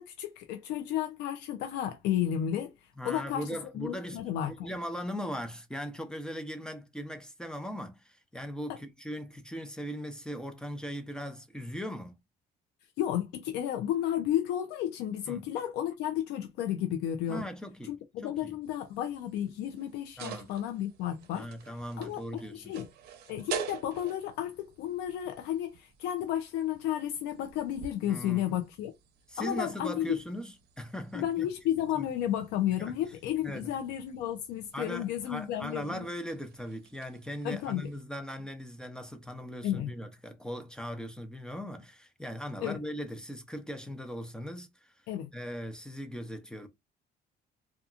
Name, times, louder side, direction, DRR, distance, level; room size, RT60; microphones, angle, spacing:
voice 1, 0.0-2.7 3.0-3.5 3.7-4.7 13.0-17.4 17.9-21.5 22.0-22.9 23.3-28.9 29.4-30.2 31.1-36.1 37.4-37.9 39.6-39.9 42.6-42.8 45.1-45.3, left 11 dB, 90° left, 0.4 m, -32 dB
voice 2, 3.0-4.3 4.6-12.1 15.3-15.4 17.3-18.0 18.2-18.5 20.2-20.5 21.3-22.8 28.0-28.6 29.3-31.5 32.0-32.1 32.8-33.0 33.4-33.7 34.7-44.9 45.3-46.7, equal, 5° left, 0.5 m, -39 dB
sound 1, 18.6-38.0, right 9 dB, 70° right, 0.6 m, -48 dB
2.8 x 2.3 x 2.4 m
cardioid pair, 110°, 17 cm